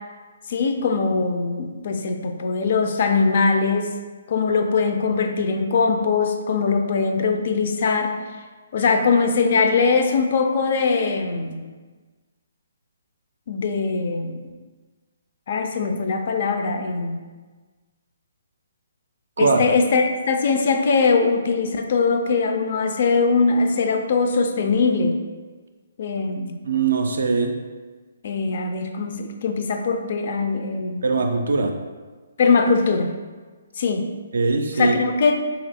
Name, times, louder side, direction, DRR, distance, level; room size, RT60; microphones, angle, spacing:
voice 1, 0.5-3.9 4.3-8.1 8.7-11.6 13.5-14.5 15.5-17.2 19.4-25.2 26.0-26.6 28.2-31.1 32.4-33.1 33.8-34.1 34.7-35.5, left 4 dB, 55° left, 5 dB, 0.4 m, -21 dB
voice 2, 26.6-27.5 31.0-31.7 34.3-35.0, right 4 dB, 75° right, 4 dB, 0.3 m, -21 dB
3.2 x 2.4 x 3.4 m, 1.4 s
hypercardioid pair, 145°, 0 cm